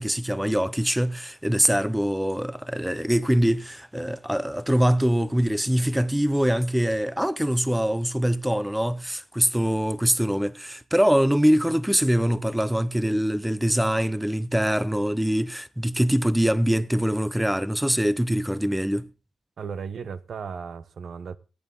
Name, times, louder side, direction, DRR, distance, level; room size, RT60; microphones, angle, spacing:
voice 1, 0.0-19.1, equal, 5° right, 0.7 m, -23 dB
voice 2, 19.6-21.4, right 6 dB, 60° right, 0.8 m, -35 dB
16.5 x 8.8 x 3.8 m
hypercardioid pair, 45°, 0 cm